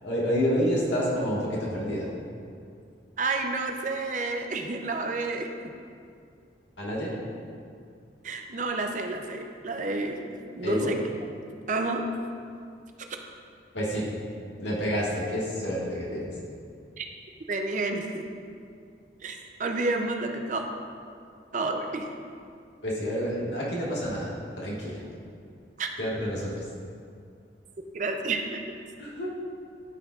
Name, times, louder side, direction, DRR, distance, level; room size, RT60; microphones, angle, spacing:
voice 1, 0.0-2.1 6.8-7.1 10.6-11.0 13.7-14.1 14.6-16.3 22.8-25.0 26.0-26.6 29.0-29.3, equal, 85° left, -5 dB, 1.6 m, -29 dB
voice 2, 3.2-5.7 8.2-10.2 10.5-11.0 11.7-12.1 17.0-17.1 17.5-18.3 19.2-20.6 21.5-22.1 25.8-25.9 27.9-28.6, right 3 dB, 45° right, 4 dB, 0.5 m, -30 dB
11.5 x 4.5 x 2.4 m, 2.3 s
head